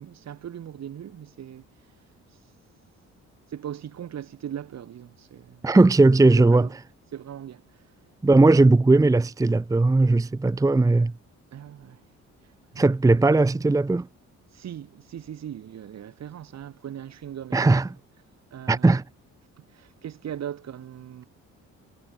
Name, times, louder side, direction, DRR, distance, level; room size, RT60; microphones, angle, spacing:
voice 1, 0.0-1.7 3.5-5.7 6.4-6.7 7.1-7.6 11.5-12.0 12.7-12.8 14.5-17.8 18.5-18.9 19.6-21.3, right 10 dB, 60° right, 2.7 m, -39 dB
voice 2, 5.6-6.7 8.2-11.1 12.8-14.1 17.5-17.9 18.7-19.0, right 2 dB, 10° right, 0.7 m, -18 dB
cardioid pair, 90°, 30 cm